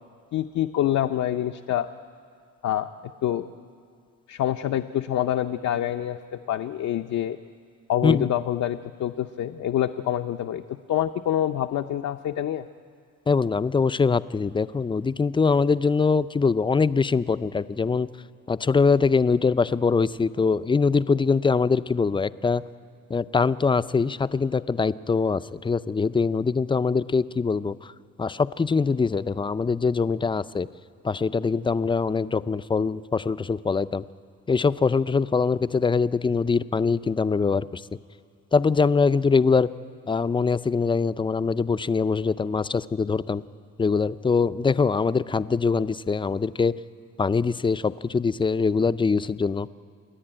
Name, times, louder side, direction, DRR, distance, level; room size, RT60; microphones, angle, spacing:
voice 1, 0.3-1.9 2.6-2.9 3.2-3.5 4.3-7.4 7.9-12.7, left 11 dB, 65° left, 6 dB, 0.7 m, -26 dB
voice 2, 13.3-18.1 18.5-22.6 23.1-27.9 28.2-30.7 31.0-34.0 34.5-37.8 38.5-39.7 40.1-43.4 43.8-46.8 47.2-49.7, left 4 dB, 15° left, 14 dB, 0.5 m, -23 dB
28.5 x 10.5 x 8.9 m, 2.4 s
cardioid pair, 90°, 30 cm